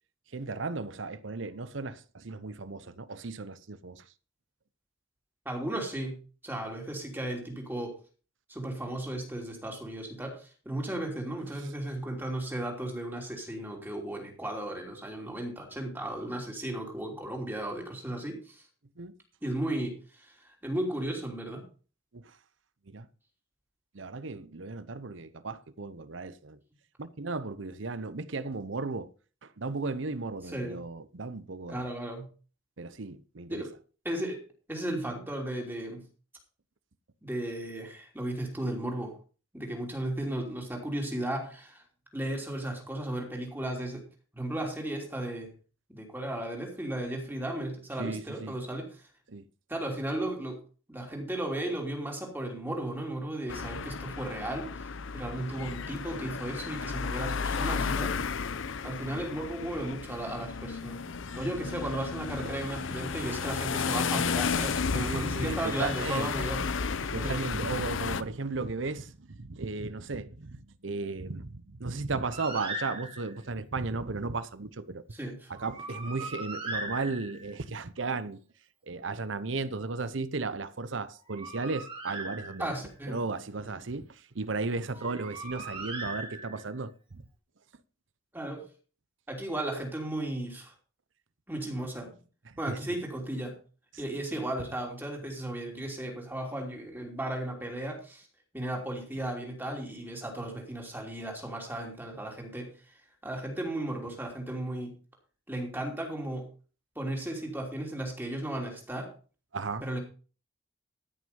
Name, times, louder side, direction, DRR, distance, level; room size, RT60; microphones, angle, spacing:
voice 1, 0.3-4.0 19.0-19.1 22.1-22.3 22.9-23.1 23.9-26.6 27.0-29.1 29.4-31.9 32.8-33.6 48.0-48.6 49.3-49.5 62.4-62.5 64.9-66.3 67.0-75.0 75.5-78.4 78.9-82.7 83.1-87.2 92.5-93.0 109.5-109.8, right 3 dB, 75° right, 0.9 m, -35 dB
voice 2, 5.4-8.0 8.5-18.6 19.4-21.6 30.5-30.8 31.7-32.3 33.5-33.7 34.0-34.4 34.7-36.0 37.2-39.1 39.5-41.8 42.1-44.1 44.3-45.5 45.9-48.9 49.7-50.6 50.9-58.2 58.8-61.0 61.3-66.6 67.2-67.4 75.1-75.5 82.6-83.2 85.0-85.1 88.3-88.6 89.3-90.7 91.5-92.2 92.6-93.6 94.0-98.3 98.5-102.7 103.2-104.9 105.5-106.5 106.9-109.1 109.8-110.0, right 1 dB, 10° right, 3.2 m, -35 dB
sound 1, 53.5-68.2, left 5 dB, 85° left, 0.7 m, -33 dB
Bird, 72.3-73.5 75.5-77.6 81.1-82.9 84.9-86.8, right 2 dB, 30° right, 3.1 m, -39 dB
14.0 x 6.4 x 5.3 m
head